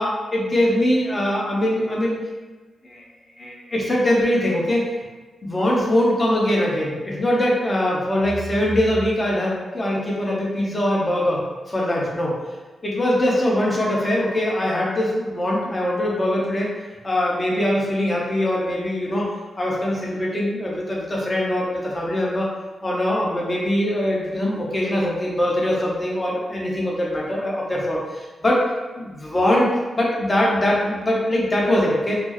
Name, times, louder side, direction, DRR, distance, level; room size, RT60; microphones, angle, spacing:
voice 1, 0.0-2.2 2.8-3.0 3.4-4.8 5.4-12.4 12.8-16.7 17.0-19.3 19.6-22.5 22.8-28.6 29.0-29.7 29.9-32.2, left 1 dB, 25° left, -4 dB, 0.9 m, -22 dB
4.3 x 2.1 x 3.0 m, 1.3 s
cardioid pair, 75°, 0 cm